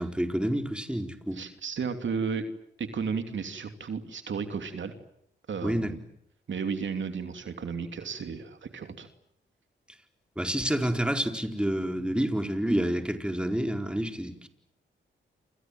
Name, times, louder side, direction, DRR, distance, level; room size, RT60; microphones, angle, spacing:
voice 1, 0.0-1.4 5.6-6.0 10.4-14.5, right 1 dB, 5° right, 4.4 m, -28 dB
voice 2, 1.3-2.4 2.8-4.9 5.5-6.0 6.5-9.1, right 5 dB, 70° right, 2.9 m, -33 dB
28.5 x 27.0 x 7.7 m
cardioid pair, 55°, 20 cm